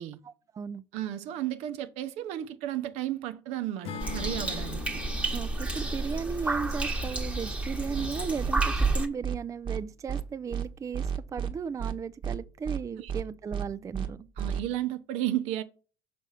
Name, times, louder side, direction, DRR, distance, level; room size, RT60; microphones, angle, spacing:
voice 1, 0.2-0.8 5.3-14.3, right 6 dB, 25° right, 0.4 m, -36 dB
voice 2, 0.9-5.0 13.0-13.1 14.4-15.6, right 13 dB, 65° right, 0.7 m, -33 dB
Acoustic guitar / Strum, 3.8-8.1, left 7 dB, 55° left, 0.9 m, -44 dB
sound 1, 4.0-9.1, right 2 dB, 10° right, 1.2 m, -30 dB
sound 2, 7.9-8.1 8.4-8.5 8.8-8.9 9.2-9.4 9.7-9.8 10.1-10.2 10.5-10.7 10.9-11.5 11.8-11.9 12.2-12.4 12.7-12.8 13.1-13.2 13.5-13.7 13.9-14.1 14.4-14.6, right 8 dB, 45° right, 1.1 m, -32 dB
5.9 x 4.2 x 5.6 m
hypercardioid pair, 65°, 12 cm